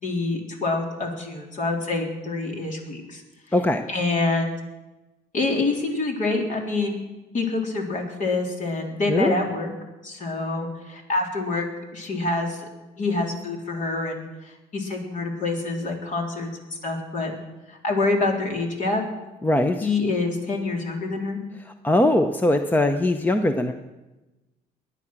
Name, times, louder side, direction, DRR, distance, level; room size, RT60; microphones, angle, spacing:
voice 1, 0.0-3.2 3.9-4.6 5.3-7.0 7.3-9.7 10.0-12.7 13.0-16.5 16.8-17.3 17.7-19.0 19.8-21.4, left 3 dB, 50° left, 1 dB, 3.7 m, -26 dB
voice 2, 3.5-3.8 9.1-9.3 19.4-19.9 21.8-23.7, left 1 dB, 10° left, 7 dB, 0.8 m, -21 dB
21.5 x 9.8 x 6.1 m, 1.1 s
cardioid pair, 110°, 17 cm